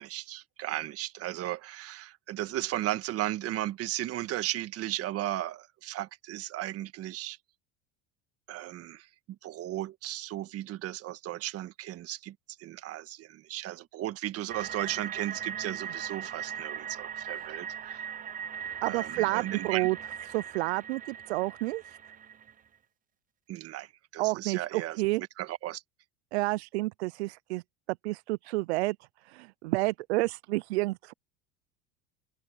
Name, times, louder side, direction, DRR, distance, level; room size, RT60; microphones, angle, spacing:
voice 1, 0.0-7.4 8.5-18.1 18.8-19.9 23.5-25.8, right 14 dB, 50° right, 1.7 m, -36 dB
sound 1, 14.5-22.5, right 8 dB, 25° right, 0.7 m, -39 dB
voice 2, 18.8-20.0 20.3-22.0 24.2-25.2 26.3-27.6 28.0-29.0 29.3-31.1, right 21 dB, 85° right, 0.5 m, -30 dB
open air
supercardioid pair, 100°, 32 cm